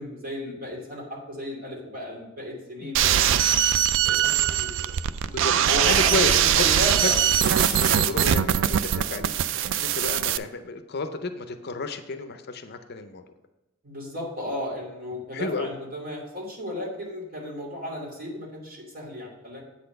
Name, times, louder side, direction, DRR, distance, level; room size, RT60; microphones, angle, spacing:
voice 1, 0.0-3.7 4.0-4.9 5.6-7.1 13.8-19.6, left 1 dB, 45° right, -3 dB, 2.8 m, -34 dB
voice 2, 2.8-3.2 5.2-5.5 5.9-6.3 6.6-6.7 7.7-13.2 15.3-15.7, left 3 dB, 50° left, 8 dB, 0.6 m, -32 dB
sound 1, 2.9-10.4, right 10 dB, 60° right, 0.3 m, -22 dB
sound 2, 4.5-4.8 5.4-8.1 9.6-10.3, right 2 dB, 25° right, 3.0 m, -34 dB
8.4 x 4.2 x 6.6 m, 1.0 s
head